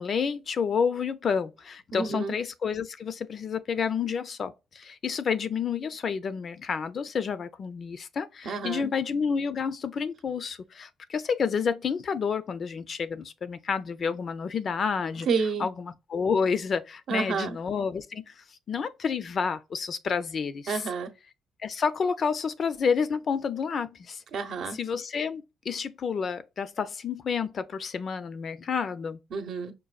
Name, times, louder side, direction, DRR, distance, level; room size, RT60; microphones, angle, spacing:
voice 1, 0.0-15.3 15.6-20.8 21.6-24.2 24.7-29.2, left 6 dB, 50° left, 0.5 m, -30 dB
voice 2, 1.9-2.3 8.4-8.9 15.3-15.7 17.1-17.6 20.7-21.1 24.3-24.8 29.3-29.7, right 5 dB, 65° right, 0.7 m, -29 dB
5.3 x 2.2 x 2.4 m
cardioid pair, 90°, 0 cm